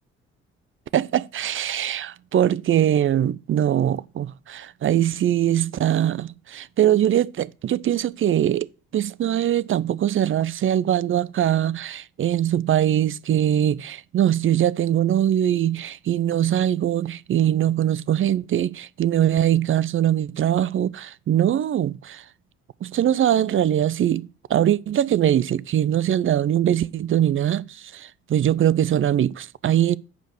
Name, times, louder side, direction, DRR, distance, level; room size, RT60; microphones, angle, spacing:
voice 1, 0.9-8.7 8.9-22.2 22.8-30.0, right 11 dB, 45° right, 0.5 m, -22 dB
7.3 x 5.2 x 6.5 m
hypercardioid pair, 50°, 30 cm